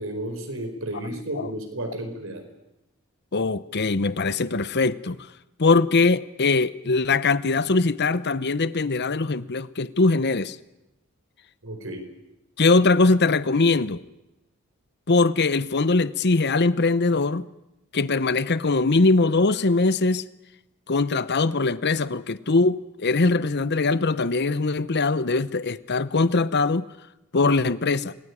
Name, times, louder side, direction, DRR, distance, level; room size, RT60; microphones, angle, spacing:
voice 1, 0.0-2.4 11.6-12.0, right 1 dB, 65° right, 4.9 m, -32 dB
voice 2, 3.3-5.2 5.6-10.6 12.6-14.0 15.1-17.5 17.9-20.2 20.9-26.9 27.3-28.1, left 3 dB, 50° left, 0.9 m, -21 dB
27.5 x 19.0 x 9.8 m
head